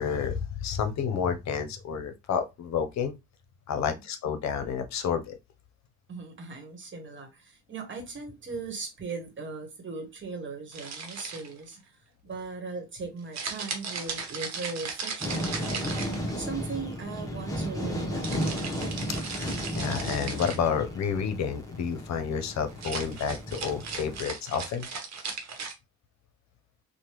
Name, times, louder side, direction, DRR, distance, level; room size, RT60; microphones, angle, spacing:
voice 1, 0.0-3.1 3.7-5.4 19.2-24.9, left 7 dB, 65° left, 0.7 m, -30 dB
voice 2, 6.1-15.9 16.4-18.6, right 4 dB, 40° right, 1.2 m, -39 dB
sound 1, 10.7-11.7 13.3-16.5 18.2-20.7 22.7-25.7, right 5 dB, 60° right, 1.0 m, -37 dB
sound 2, 15.2-24.2, equal, 10° left, 0.9 m, -34 dB
3.2 x 2.2 x 3.0 m
cardioid pair, 90°, 30 cm